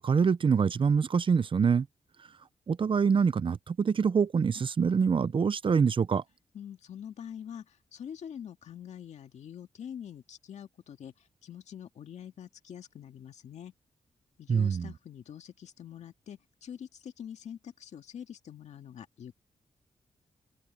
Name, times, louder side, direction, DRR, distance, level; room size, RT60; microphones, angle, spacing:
voice 1, 0.0-1.9 2.7-6.2 14.5-14.9, right 6 dB, 50° right, 0.7 m, -25 dB
voice 2, 6.5-13.7 14.4-19.4, left 9 dB, 80° left, 2.0 m, -45 dB
cardioid pair, 70°, 12 cm